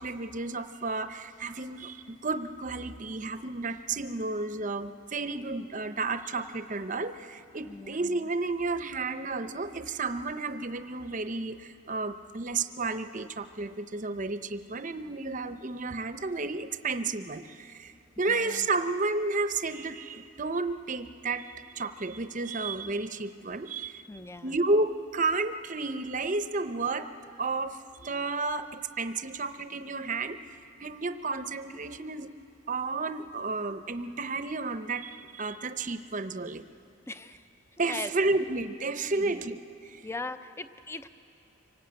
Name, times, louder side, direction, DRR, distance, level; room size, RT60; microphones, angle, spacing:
voice 1, 0.0-17.9 18.2-24.0 24.4-32.3 32.7-36.6 37.8-39.6 39.8-40.0, right 3 dB, 35° right, 10 dB, 0.7 m, -32 dB
voice 2, 7.6-8.0 18.3-18.7 24.1-24.5 37.1-37.5 37.9-38.1 39.1-39.4 40.0-41.1, left 3 dB, 10° left, 11 dB, 0.5 m, -39 dB
25.5 x 18.5 x 8.8 m, 2.6 s
head